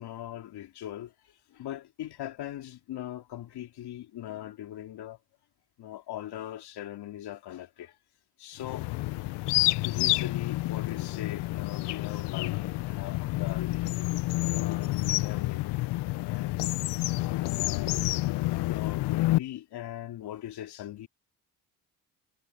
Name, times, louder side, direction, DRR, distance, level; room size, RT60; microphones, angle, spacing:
voice 1, 0.0-5.2 5.8-8.0 8.4-8.9 9.8-13.9 14.5-16.7 17.3-17.9 18.7-21.1, left 12 dB, 70° left, 3.0 m, -40 dB
sound 1, 8.6-19.4, left 19 dB, 85° left, 0.8 m, -29 dB
cardioid pair, 90°, 40 cm